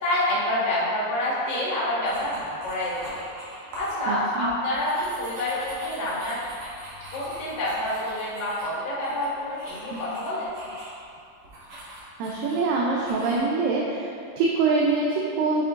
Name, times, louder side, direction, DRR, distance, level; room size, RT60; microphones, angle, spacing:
voice 1, 0.0-3.2 3.7-6.4 7.1-10.5, left 1 dB, 75° left, -10 dB, 0.4 m, -27 dB
sound 1, 2.0-3.9 4.3-11.0 11.4-12.6 13.0-13.4, right 1 dB, 60° right, 2.3 m, -43 dB
voice 2, 4.1-4.5 9.9-10.0 12.2-15.7, right 3 dB, 80° right, -3 dB, 2.3 m, -24 dB
7.7 x 7.4 x 2.5 m, 2.4 s
omnidirectional pair, 4.1 m